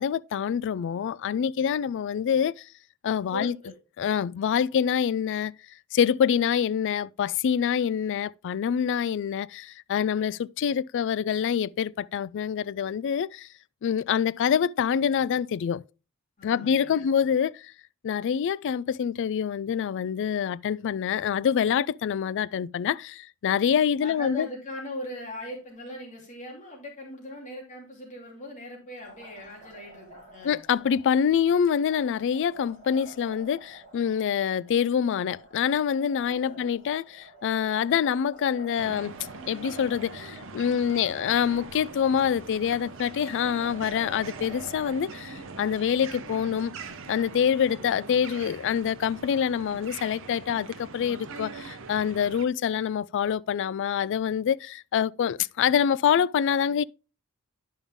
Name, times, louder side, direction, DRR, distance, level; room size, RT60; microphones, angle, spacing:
voice 1, 0.0-2.7 3.0-3.5 4.0-5.5 5.9-13.5 13.8-15.8 16.4-17.7 18.0-24.5 30.4-39.1 39.5-46.7 47.1-56.8, left 8 dB, 55° left, 0.3 m, -26 dB
voice 2, 3.3-3.7 16.4-17.1 24.0-30.6 36.3-36.6 40.7-41.3, left 1 dB, 35° left, 2.9 m, -40 dB
Liquid, 29.0-48.5, right 2 dB, 35° right, 4.0 m, -50 dB
sound 1, 38.8-52.5, right 4 dB, 60° right, 0.8 m, -43 dB
10.5 x 5.4 x 3.6 m
head